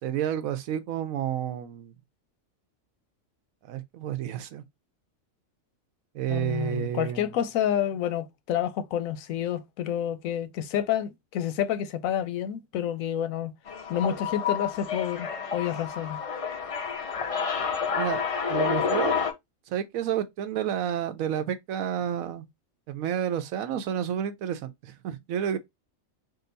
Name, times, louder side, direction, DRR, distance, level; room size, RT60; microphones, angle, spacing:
voice 1, 0.0-1.9 3.7-4.6 6.1-7.3 18.0-18.2 18.5-19.2 19.7-22.4 22.9-25.6, right 9 dB, 85° right, 1.0 m, -30 dB
voice 2, 6.3-13.5 13.9-16.2, left 10 dB, 90° left, 1.0 m, -29 dB
sound 1, 13.7-19.3, left 6 dB, 65° left, 0.3 m, -29 dB
3.9 x 2.3 x 3.8 m
omnidirectional pair, 1.4 m